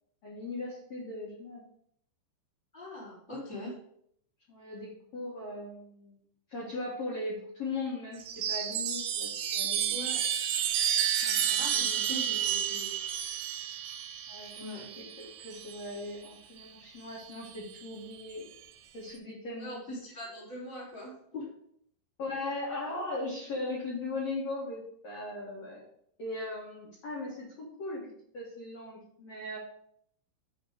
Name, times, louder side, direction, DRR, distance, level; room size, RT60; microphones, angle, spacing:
voice 1, 0.2-1.6 4.5-6.2 6.5-10.0 11.2-12.1 14.3-18.5 18.9-19.8 22.2-25.8 26.2-28.0 28.3-29.6, left 2 dB, 75° left, -5 dB, 1.5 m, -39 dB
voice 2, 2.7-3.8 9.9-10.2 11.6-12.9 14.5-14.9 19.6-21.5, left 1 dB, 5° right, -7 dB, 0.9 m, -41 dB
Chime, 8.2-16.0 17.2-17.8, right 9 dB, 90° right, 3.2 m, -31 dB
8.7 x 2.9 x 4.9 m, 0.69 s
omnidirectional pair, 5.4 m